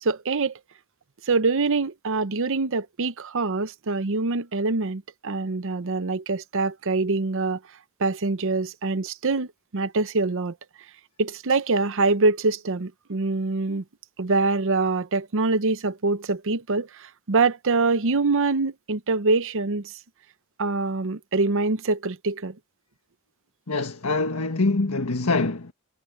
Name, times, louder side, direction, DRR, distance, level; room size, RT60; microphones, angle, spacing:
voice 1, 0.0-0.5 1.3-7.6 8.0-10.5 11.2-13.8 14.2-19.9 20.6-22.5, right 3 dB, 60° right, 0.8 m, -24 dB
voice 2, 23.7-25.7, left 3 dB, 75° left, 1.6 m, -24 dB
head